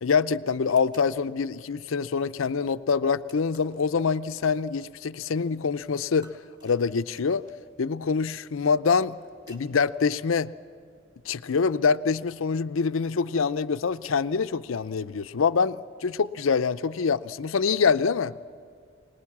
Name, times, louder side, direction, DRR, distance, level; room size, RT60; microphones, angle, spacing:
voice 1, 0.0-6.3 6.6-7.4 7.8-9.2 9.5-10.5 11.3-18.3, left 5 dB, 80° left, 13 dB, 0.5 m, -25 dB
sound 1, 0.7-1.1 3.3-3.8 6.2-7.6 8.7-9.7, equal, 25° right, 2.6 m, -55 dB
25.0 x 19.5 x 7.2 m, 2.2 s
head